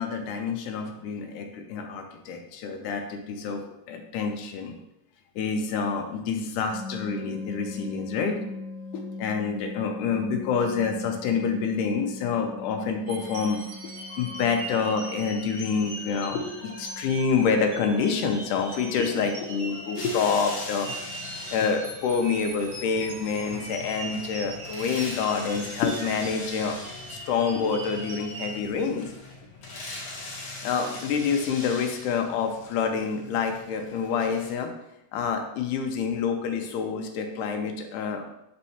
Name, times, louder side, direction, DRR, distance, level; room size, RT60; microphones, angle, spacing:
voice 1, 0.0-4.8 5.4-8.6 8.9-13.6 14.2-21.0 21.5-26.8 27.0-29.1 30.6-34.7 35.1-38.3, left 5 dB, 85° left, 5 dB, 2.2 m, -27 dB
sound 1, 6.7-21.6, left 3 dB, 40° right, 1.7 m, -42 dB
sound 2, 13.1-28.6, right 2 dB, 55° right, 1.9 m, -40 dB
sound 3, 20.0-34.5, left 2 dB, 60° left, 1.3 m, -41 dB
6.2 x 5.4 x 2.8 m, 0.84 s
omnidirectional pair, 3.7 m